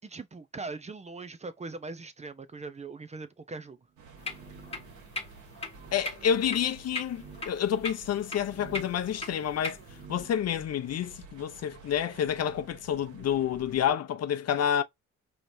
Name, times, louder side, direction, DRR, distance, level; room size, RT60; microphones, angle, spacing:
voice 1, 0.0-3.8, right 3 dB, 20° right, 0.6 m, -41 dB
sound 1, 4.0-5.0 5.7-6.0 7.0-7.5 8.3-9.1 9.7-10.4, right 5 dB, 35° right, 1.2 m, -50 dB
sound 2, 4.0-13.9, right 4 dB, 75° right, 1.6 m, -51 dB
sound 3, 4.2-10.1, left 2 dB, 20° left, 1.3 m, -41 dB
voice 2, 5.9-9.8 10.1-14.8, left 9 dB, 55° left, 0.6 m, -29 dB
4.9 x 3.0 x 2.6 m
cardioid pair, 90°, 30 cm